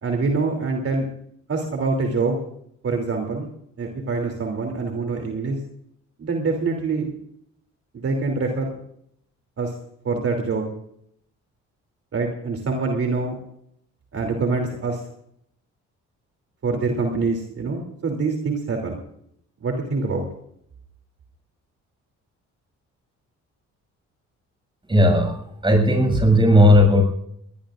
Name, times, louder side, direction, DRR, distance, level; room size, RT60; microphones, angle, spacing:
voice 1, 0.0-1.1 1.5-2.4 2.8-3.5 3.8-5.6 6.2-7.1 8.0-8.7 9.6-9.7 10.0-10.6 12.1-13.3 14.1-15.0 16.6-19.0 19.6-20.2, right 4 dB, 50° right, 3 dB, 3.2 m, -25 dB
voice 2, 24.9-25.3 25.6-27.0, left 1 dB, 15° right, 3 dB, 6.8 m, -15 dB
21.5 x 20.5 x 2.6 m, 0.71 s
cardioid pair, 90°, 30 cm